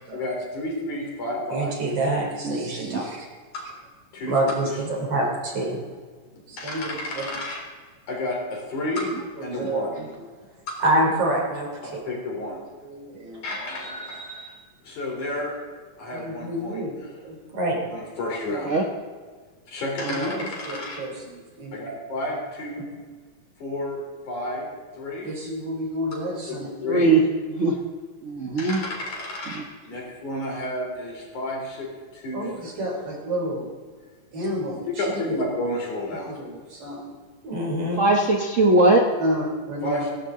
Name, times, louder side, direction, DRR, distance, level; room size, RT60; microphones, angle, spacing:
voice 1, 0.1-1.8 3.5-3.6 4.1-4.7 6.4-7.6 8.1-9.1 9.4-10.0 10.7-10.8 11.8-12.6 13.4-14.5 14.8-15.6 16.0-17.1 17.9-18.9 19.7-21.0 21.7-22.9 23.6-24.7 24.9-25.3 26.1-26.2 26.5-27.1 28.6-32.7 34.9-36.4 39.8-40.1, left 1 dB, 85° left, -1 dB, 5.2 m, -31 dB
voice 2, 1.5-3.2 4.3-5.8 6.5-7.3 9.5-9.9 10.8-11.7 12.8-13.4 16.1-17.8 20.0-21.8 25.3-26.7 32.3-33.7 34.3-34.8 35.3-35.4 36.3-37.1 37.4-38.0 39.2-40.1, right 1 dB, 55° right, -1 dB, 4.3 m, -28 dB
voice 3, 2.4-3.0 18.7-18.8 26.9-27.2 27.5-27.8 28.2-28.8 38.0-39.1, right 2 dB, 70° right, 1 dB, 0.7 m, -20 dB
17.5 x 17.0 x 3.8 m, 1.5 s
omnidirectional pair, 3.3 m